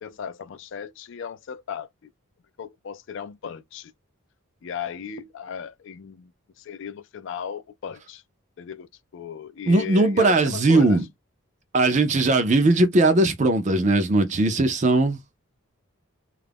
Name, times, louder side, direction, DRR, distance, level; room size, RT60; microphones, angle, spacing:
voice 1, 0.0-2.1 2.6-3.9 4.6-6.3 6.6-8.2 8.6-11.0, left 7 dB, 60° left, 0.3 m, -36 dB
voice 2, 9.7-11.0 11.7-15.2, right 2 dB, 35° right, 0.4 m, -19 dB
2.3 x 2.0 x 3.3 m
head